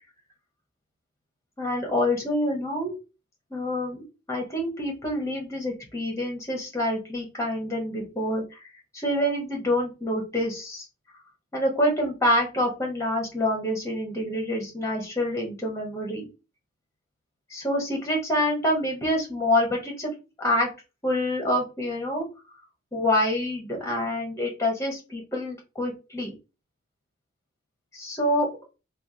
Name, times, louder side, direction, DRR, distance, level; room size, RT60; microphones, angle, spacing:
voice 1, 1.6-3.0 3.5-4.0 4.3-8.6 8.9-10.8 11.5-16.3 17.5-20.1 20.4-20.7 21.0-22.2 22.9-26.3 27.9-28.5, left 1 dB, 15° left, 0 dB, 1.2 m, -26 dB
3.4 x 2.1 x 4.1 m, 0.29 s
head